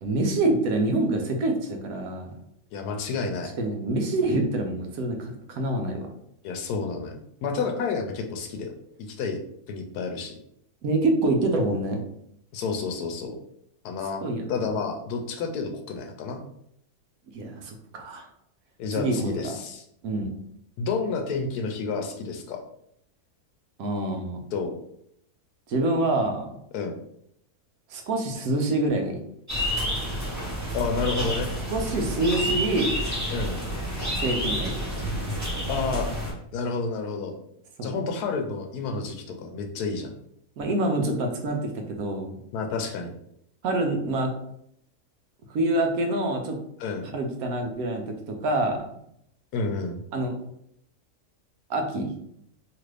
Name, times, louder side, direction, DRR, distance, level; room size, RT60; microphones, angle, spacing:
voice 1, 0.0-2.3 3.6-6.1 10.8-12.0 14.2-14.7 17.3-18.3 19.0-19.5 20.0-20.3 23.8-24.4 25.7-26.5 27.9-29.2 31.7-32.9 34.2-34.8 37.8-37.9 40.6-42.3 43.6-44.3 45.5-46.6 47.1-48.9 50.1-50.3 51.7-52.1, right 2 dB, 70° right, 3 dB, 1.0 m, -26 dB
voice 2, 2.7-3.5 6.4-8.7 9.0-9.4 9.7-10.3 12.5-13.4 13.8-14.2 14.5-16.4 18.8-19.8 20.8-22.6 24.5-24.7 26.7-27.0 30.7-31.5 33.3-33.6 35.7-36.1 36.5-37.4 37.8-40.1 42.5-43.1 46.8-47.1 49.5-50.0, left 4 dB, 80° left, 4 dB, 1.1 m, -30 dB
sound 1, 29.5-36.3, equal, 15° right, 0.7 m, -29 dB
3.0 x 2.5 x 3.2 m, 0.73 s
omnidirectional pair, 1.6 m